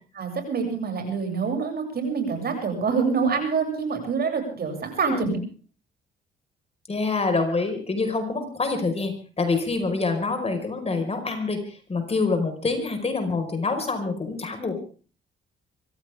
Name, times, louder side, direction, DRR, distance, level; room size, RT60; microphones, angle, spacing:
voice 1, 0.1-5.4, right 5 dB, 50° right, 4 dB, 7.5 m, -26 dB
voice 2, 5.0-5.4 6.9-14.8, left 3 dB, 30° left, 6 dB, 5.1 m, -26 dB
25.0 x 15.5 x 3.6 m, 0.39 s
cardioid pair, 90°, 20 cm